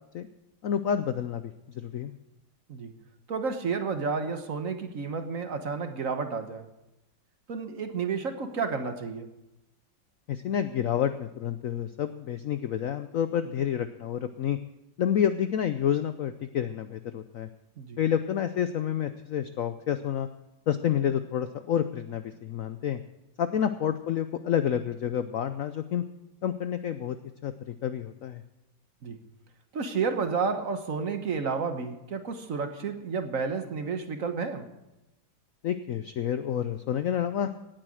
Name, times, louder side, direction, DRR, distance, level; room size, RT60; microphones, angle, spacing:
voice 1, 0.6-2.1 10.3-14.6 15.0-17.5 18.0-20.3 20.7-23.0 23.4-26.0 26.4-27.2 27.4-28.4 35.6-37.5, left 9 dB, 90° left, 11 dB, 0.7 m, -29 dB
voice 2, 3.3-6.6 7.5-9.3 17.8-18.0 29.0-29.2 29.7-34.7, right 5 dB, 50° right, 7 dB, 1.3 m, -31 dB
17.5 x 9.0 x 6.3 m, 0.95 s
omnidirectional pair, 2.2 m